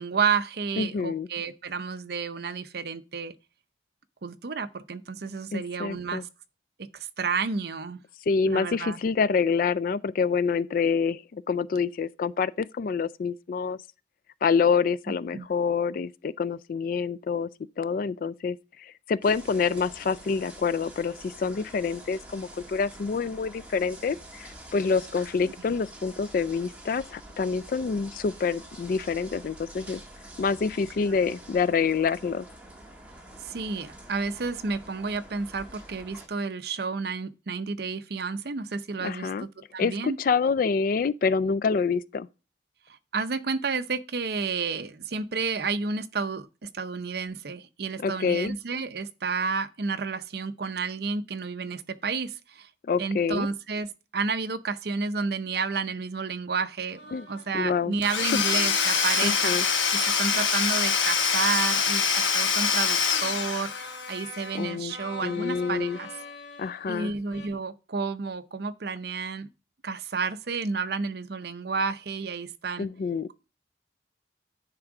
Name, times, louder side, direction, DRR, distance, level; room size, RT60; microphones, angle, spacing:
voice 1, 0.0-3.3 4.2-6.3 6.8-8.0 8.5-9.0 15.3-15.5 33.4-40.2 43.1-52.7 53.0-53.9 54.1-57.0 57.3-59.5 60.0-63.7 64.1-66.1 66.9-69.5 69.8-72.9, right 4 dB, 55° right, 0.6 m, -31 dB
voice 2, 0.8-1.3 5.5-6.2 8.3-13.8 14.4-17.5 17.8-30.0 30.4-32.5 39.0-39.5 39.8-42.3 48.0-48.5 52.8-53.5 57.1-57.3 57.5-57.9 59.2-59.7 64.5-64.9 65.2-66.0 66.6-67.1 72.8-73.3, left 5 dB, 50° left, 0.3 m, -27 dB
sound 1, 19.2-36.3, right 1 dB, 5° right, 1.4 m, -47 dB
sound 2, 56.9-58.0 58.8-59.3 60.1-60.8 62.5-67.5, left 3 dB, 75° left, 1.5 m, -44 dB
Domestic sounds home sounds / Tools, 58.0-64.1, left 6 dB, 90° left, 1.1 m, -24 dB
9.8 x 3.6 x 4.8 m
head